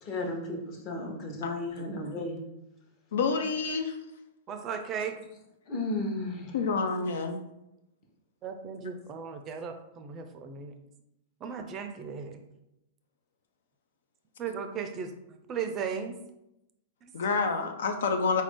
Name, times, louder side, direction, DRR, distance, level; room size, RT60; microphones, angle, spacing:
voice 1, 0.0-2.4 5.7-6.6, left 2 dB, 35° left, 2 dB, 0.8 m, -34 dB
voice 2, 3.1-4.0 6.5-7.4 17.1-18.4, left 4 dB, 75° left, 6 dB, 0.4 m, -28 dB
voice 3, 4.5-5.2 8.4-10.7 11.4-12.4 14.4-15.1 15.5-16.2 17.0-17.1, right 6 dB, 30° right, 6 dB, 0.4 m, -36 dB
4.1 x 2.5 x 3.5 m, 0.88 s
hypercardioid pair, 135°, 0 cm